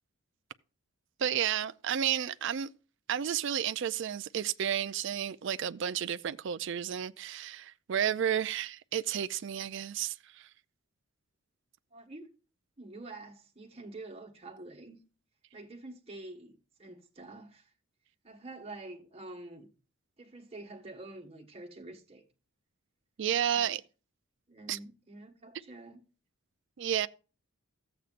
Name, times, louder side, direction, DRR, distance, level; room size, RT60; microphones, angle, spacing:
voice 1, 1.2-2.7 3.1-10.5 23.2-23.8 24.7-24.8 26.8-27.1, right 9 dB, 55° right, 0.4 m, -32 dB
voice 2, 11.9-12.3 12.8-15.0 15.5-17.7 18.2-19.7 20.2-22.2 23.5-23.8 24.5-26.0, right 2 dB, 25° right, 1.4 m, -47 dB
14.0 x 7.9 x 2.5 m
head